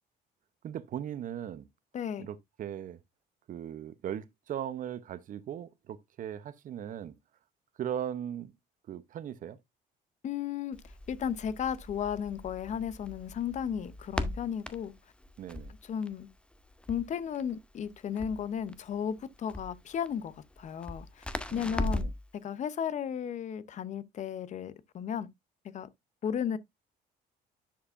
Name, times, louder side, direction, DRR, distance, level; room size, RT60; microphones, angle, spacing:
voice 1, 0.6-1.7 2.2-3.0 3.5-7.2 7.8-8.5 8.9-9.6 15.4-15.7 21.5-22.1, right 10 dB, 50° right, 0.8 m, -38 dB
voice 2, 1.9-2.3 10.2-10.8 11.1-14.9 15.8-16.3 16.9-21.2 21.5-22.1 22.4-25.3 25.7-25.9 26.2-26.6, left 8 dB, 45° left, 0.6 m, -34 dB
Crackle, 10.7-22.3, left 1 dB, 5° left, 0.7 m, -40 dB
10.0 x 4.9 x 2.5 m
cardioid pair, 110°, 17 cm